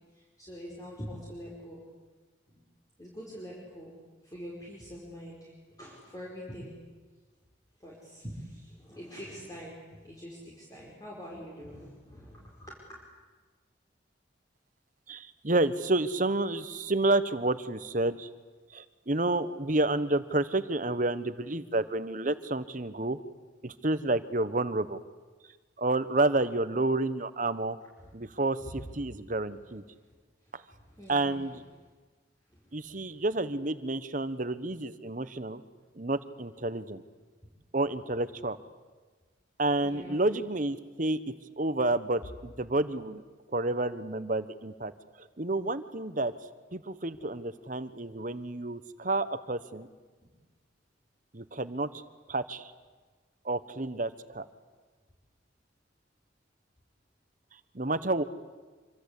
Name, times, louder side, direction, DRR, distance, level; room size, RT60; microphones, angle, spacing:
voice 1, 0.1-1.8 2.5-2.6 3.0-3.9 4.2-5.5 5.8-6.7 7.8-12.8 28.6-28.7 30.4-31.4 32.5-33.2 39.8-40.2 50.2-50.3, equal, 20° left, -4 dB, 5.2 m, -45 dB
voice 2, 15.1-18.3 18.7-23.2 23.6-25.0 25.8-27.8 28.1-29.8 30.5-30.6 31.1-31.6 32.7-35.6 35.9-37.0 37.7-38.6 39.6-41.2 41.6-43.2 43.5-44.9 45.2-46.3 46.7-49.9 51.3-52.0 52.3-52.7 53.4-54.5 57.7-58.2, right 2 dB, 45° right, 13 dB, 1.2 m, -30 dB
26.5 x 25.5 x 8.5 m, 1.4 s
head